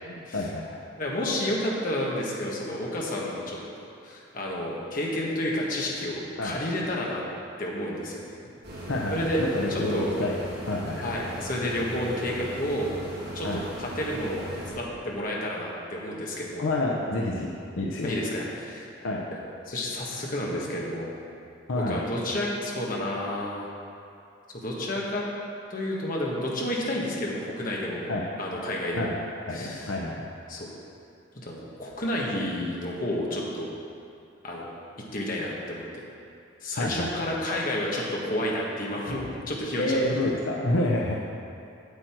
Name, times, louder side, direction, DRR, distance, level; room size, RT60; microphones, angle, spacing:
voice 1, 0.0-0.8 6.4-6.6 8.9-10.4 10.7-11.1 13.4-13.6 16.6-17.5 17.8-18.1 19.0-19.2 21.7-22.0 28.1-28.3 29.0-29.2 29.5-30.2 36.7-37.2 39.8-41.1, left 1 dB, 85° left, -2 dB, 0.8 m, -28 dB
voice 2, 1.0-3.6 4.0-7.2 7.6-8.3 9.1-9.4 9.7-10.1 11.0-12.9 13.3-16.7 18.0-18.8 19.7-21.2 21.9-23.7 24.5-25.2 25.7-28.1 28.4-29.1 29.5-29.9 30.5-30.7 31.4-33.7 34.4-34.7 35.1-35.8 36.6-40.3, left 1 dB, 45° left, -3 dB, 1.5 m, -30 dB
sound 1, 8.6-14.7, equal, 55° right, 2.3 m, -38 dB
8.2 x 7.8 x 4.6 m, 2.6 s
head